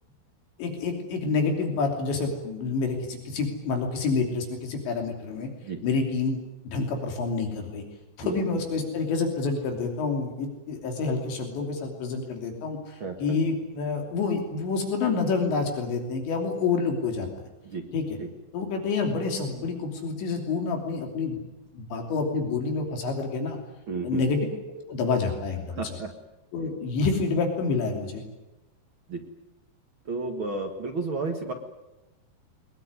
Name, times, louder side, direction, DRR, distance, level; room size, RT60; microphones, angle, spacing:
voice 1, 0.6-5.5 5.8-6.4 6.7-7.8 8.2-17.3 17.9-18.2 18.5-21.4 21.7-23.6 24.0-24.4 24.9-25.9 26.5-28.2, left 4 dB, 75° left, 3 dB, 5.2 m, -28 dB
voice 2, 8.2-8.9 13.0-13.4 17.6-17.8 18.2-18.3 23.9-24.2 25.7-26.1 29.1-29.2 30.0-31.5, right 3 dB, 60° right, 3 dB, 1.3 m, -32 dB
22.5 x 21.0 x 9.6 m, 1.0 s
omnidirectional pair, 5.2 m